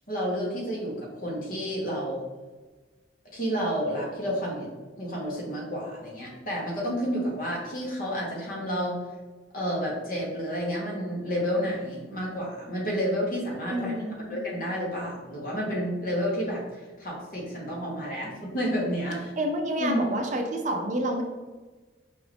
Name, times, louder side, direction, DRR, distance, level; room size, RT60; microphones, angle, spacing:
voice 1, 0.1-2.2 3.3-4.7 5.0-9.0 9.5-14.0 14.3-16.6 17.0-19.3 19.8-20.0, equal, 50° left, -3 dB, 1.2 m, -30 dB
voice 2, 13.7-14.4 19.4-21.2, right 1 dB, 40° right, 3 dB, 0.5 m, -28 dB
4.9 x 2.5 x 3.4 m, 1.3 s
head